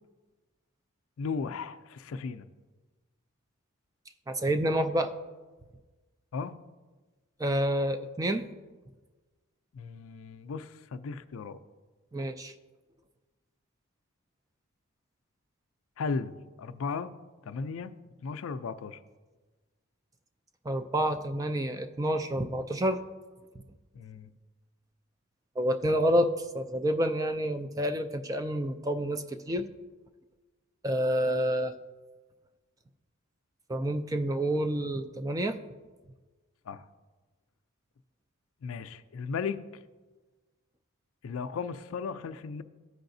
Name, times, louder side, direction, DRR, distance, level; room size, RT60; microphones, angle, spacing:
voice 1, 1.2-2.5 6.3-6.6 9.7-11.6 16.0-17.1 17.5-17.9 18.2-19.0 23.9-24.3 36.7-36.9 38.6-39.6 41.2-42.6, left 5 dB, 75° left, 12 dB, 0.4 m, -36 dB
voice 2, 4.3-5.1 7.4-8.5 12.1-12.5 20.7-23.0 25.6-29.7 30.8-31.7 33.7-35.6, equal, 15° right, 8 dB, 0.3 m, -28 dB
14.0 x 4.8 x 2.6 m, 1.3 s
head